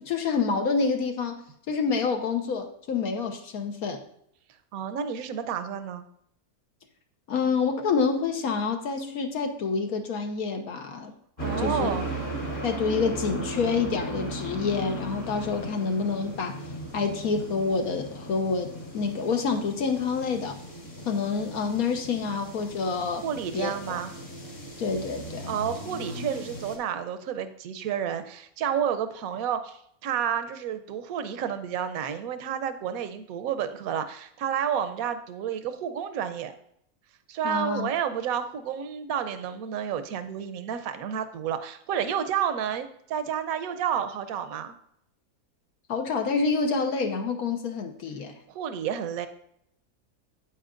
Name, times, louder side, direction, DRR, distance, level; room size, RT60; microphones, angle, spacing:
voice 1, 0.0-4.0 7.3-11.1 11.6-11.9 12.6-16.6 16.9-20.6 21.0-23.2 23.5-24.0 24.8-25.6 37.4-37.9 45.9-48.3, left 5 dB, 70° left, 5 dB, 1.4 m, -27 dB
voice 2, 4.7-6.0 11.4-12.1 23.2-24.1 25.5-36.5 37.3-44.8 48.5-49.3, right 8 dB, 70° right, 9 dB, 1.1 m, -30 dB
sound 1, 11.4-26.8, right 1 dB, 55° left, 2.2 m, -37 dB
8.9 x 8.6 x 2.5 m, 0.71 s
omnidirectional pair, 1.6 m